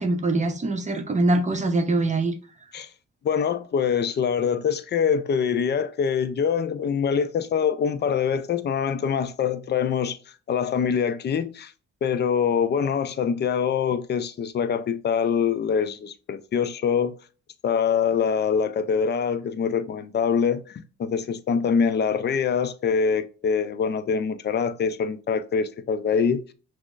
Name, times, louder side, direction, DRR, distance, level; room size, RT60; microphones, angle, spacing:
voice 1, 0.0-2.3, right 2 dB, 25° right, 0.6 m, -23 dB
voice 2, 3.2-10.2 10.5-11.7 12.0-17.1 17.6-26.4, left 6 dB, 35° left, 0.4 m, -24 dB
5.9 x 2.0 x 2.4 m
cardioid pair, 90°, 30 cm